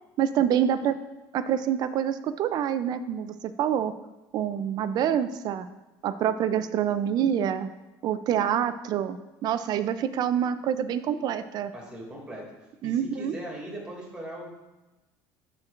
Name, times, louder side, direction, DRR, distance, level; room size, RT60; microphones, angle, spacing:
voice 1, 0.2-1.0 1.3-3.9 4.3-5.7 6.0-7.7 8.0-9.2 9.4-11.7 12.8-13.4, right 9 dB, 50° right, 12 dB, 0.4 m, -26 dB
voice 2, 11.7-12.4 12.8-14.5, right 1 dB, 10° right, -3 dB, 2.4 m, -39 dB
12.0 x 4.4 x 2.5 m, 1.1 s
cardioid pair, 115°, 9 cm